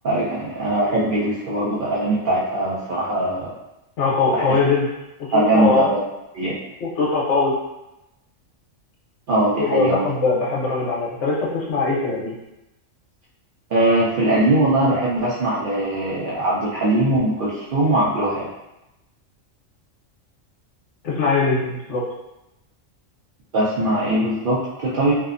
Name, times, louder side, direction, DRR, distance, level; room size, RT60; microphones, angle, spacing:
voice 1, 0.0-3.5 4.3-4.4 5.3-6.0 6.3-6.6 9.3-10.1 13.7-18.5 23.5-25.1, right 1 dB, 65° right, -8 dB, 0.5 m, -21 dB
voice 2, 4.0-4.9 5.3-5.9 6.8-7.5 9.6-12.3 21.0-22.0, left 4 dB, 65° left, -5 dB, 0.9 m, -21 dB
2.6 x 2.1 x 2.4 m, 0.93 s
omnidirectional pair, 1.3 m